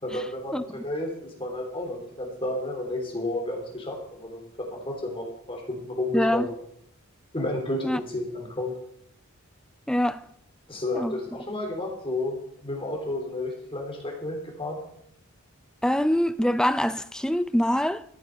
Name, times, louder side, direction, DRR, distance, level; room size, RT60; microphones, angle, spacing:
voice 1, 0.0-6.5 7.3-8.7 10.7-12.4 12.6-14.8, left 1 dB, 25° left, 3.3 m, -31 dB
voice 2, 6.1-6.5 7.8-8.0 9.9-10.2 10.9-11.2 15.8-18.0, equal, 5° left, 0.4 m, -24 dB
13.5 x 8.5 x 6.5 m
head